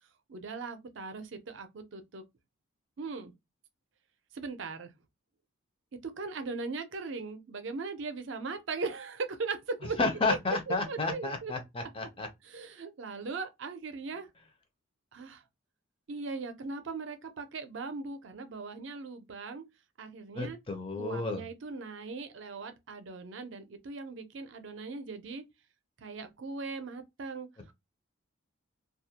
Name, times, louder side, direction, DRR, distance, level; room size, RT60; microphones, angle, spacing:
voice 1, 0.3-2.2 3.0-3.3 4.3-4.9 6.0-10.0 10.3-10.4 10.9-11.5 12.4-14.3 15.1-15.4 16.1-19.6 20.0-20.6 21.0-25.4 26.0-27.5, right 4 dB, 65° right, 0.5 m, -39 dB
voice 2, 10.0-12.3 20.3-21.4, left 3 dB, 25° left, 0.5 m, -31 dB
2.3 x 2.1 x 2.7 m
head